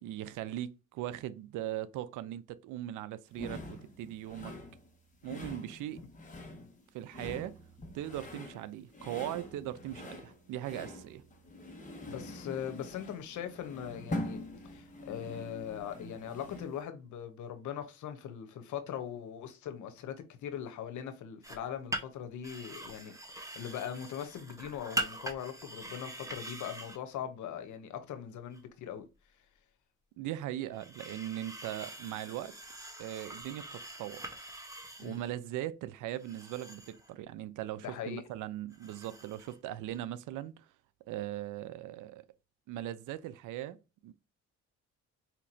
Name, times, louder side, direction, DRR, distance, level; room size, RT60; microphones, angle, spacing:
voice 1, 0.0-4.5 5.2-6.0 6.9-7.6 7.9-11.2 30.2-32.6 33.0-34.2 35.0-40.7 41.1-42.3 42.7-43.8 44.0-44.1, right 13 dB, 85° right, 0.5 m, -39 dB
sound 1, 3.3-16.8, left 1 dB, 25° left, 1.2 m, -44 dB
voice 2, 12.1-29.0 35.0-35.2 37.8-38.2, left 9 dB, 75° left, 0.8 m, -41 dB
sound 2, 21.4-21.7 21.9-22.0 22.4-27.0 28.5-28.6 30.7-35.3 36.2-37.1 38.7-39.6 39.8-40.0, right 1 dB, 10° right, 0.9 m, -42 dB
4.4 x 2.9 x 2.6 m
cardioid pair, 90°, 30 cm